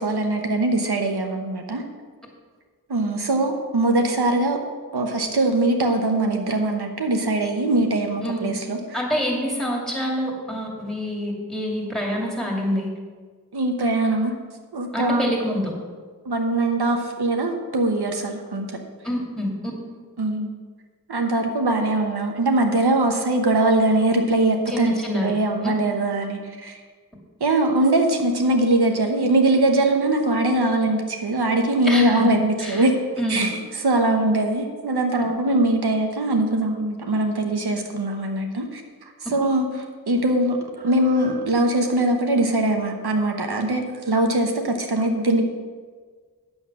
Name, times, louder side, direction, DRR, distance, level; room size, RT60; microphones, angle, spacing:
voice 1, 0.0-1.8 2.9-4.6 4.9-9.0 13.5-14.4 14.7-15.3 16.2-18.7 20.2-20.5 21.1-26.8 27.4-32.9 33.3-38.8 39.3-39.7 40.1-45.5, right 2 dB, 85° right, 4 dB, 1.0 m, -22 dB
voice 2, 8.9-12.9 14.9-15.7 19.0-19.5 24.7-25.3 25.6-25.7 31.8-32.3 32.6-32.9 33.2-33.3, equal, ahead, -2 dB, 2.6 m, -26 dB
9.0 x 7.2 x 6.1 m, 1.5 s
wide cardioid pair, 50°, 38 cm